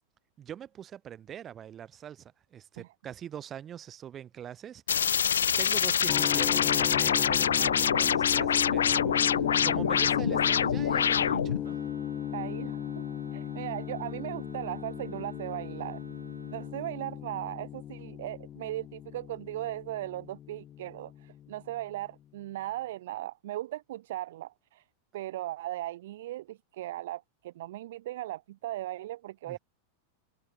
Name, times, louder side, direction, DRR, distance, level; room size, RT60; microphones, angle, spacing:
voice 1, 0.4-5.2 5.6-11.8 29.5-29.6, right 9 dB, 25° right, 6.3 m, -43 dB
sound 1, 4.9-11.6, left 8 dB, 70° left, 0.8 m, -25 dB
sound 2, 6.1-22.0, left 11 dB, 30° left, 0.8 m, -37 dB
voice 2, 7.6-8.0 12.3-13.1 13.3-16.0 16.5-24.8 25.1-29.6, right 15 dB, 55° right, 0.6 m, -38 dB
Wind instrument woodwind instrument, 11.6-16.8, right 3 dB, 80° right, 6.8 m, -48 dB
figure-of-eight pair, 90°, 0 cm